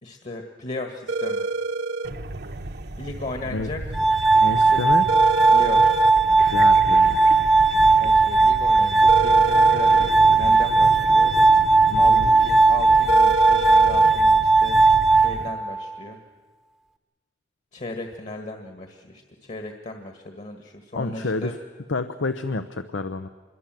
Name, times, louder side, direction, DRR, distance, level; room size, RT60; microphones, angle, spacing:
voice 1, 0.0-1.4 3.0-4.0 4.7-4.8 5.5-5.9 8.0-11.3 12.0-14.8 15.1-16.2 17.7-21.5, left 2 dB, 40° left, 5 dB, 1.6 m, -36 dB
sound 1, 1.1-2.1 5.1-6.1 9.1-10.1 13.1-14.1, right 3 dB, 85° right, 1.1 m, -27 dB
sound 2, 2.0-15.5, right 1 dB, 60° right, 1.2 m, -34 dB
Glass, 3.9-16.0, right 3 dB, ahead, 0.9 m, -17 dB
voice 2, 4.4-5.1 6.5-7.2 11.9-12.3 20.9-21.6 21.9-23.3, left 3 dB, 85° left, 10 dB, 0.9 m, -28 dB
26.0 x 22.0 x 7.6 m, 1.4 s
head